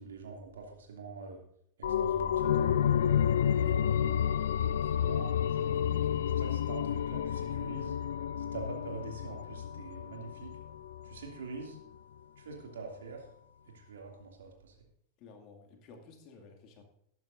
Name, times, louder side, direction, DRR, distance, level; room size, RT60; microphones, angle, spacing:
voice 1, 0.0-1.4 1.8-3.4 4.6-5.3 5.6-8.0 8.4-10.6 11.0-11.8 12.4-13.3 13.6-14.7, right 4 dB, 65° right, 1 dB, 2.6 m, -45 dB
sound 1, 1.8-11.2 11.5-11.6, left 9 dB, 60° left, 0.4 m, -30 dB
voice 2, 3.4-4.0 15.2-16.8, left 4 dB, 40° left, 3 dB, 2.2 m, -54 dB
19.0 x 9.2 x 2.6 m, 0.71 s
figure-of-eight pair, 90°, 0 cm